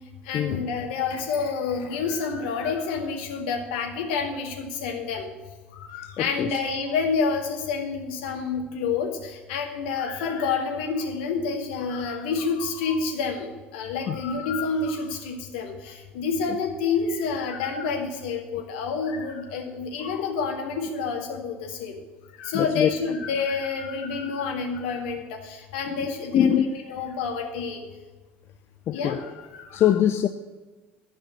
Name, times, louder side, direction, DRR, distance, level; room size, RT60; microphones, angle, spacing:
voice 1, 0.3-5.3 5.7-13.5 13.7-21.9 22.4-26.6 26.9-27.8 28.9-29.9, left 5 dB, 65° left, 2.0 m, -28 dB
voice 2, 6.2-6.6 14.1-14.2 22.5-22.9 25.9-26.7 28.9-29.2 29.7-30.3, left 10 dB, 40° left, 0.5 m, -23 dB
11.5 x 5.5 x 8.4 m
figure-of-eight pair, 65°, 6 cm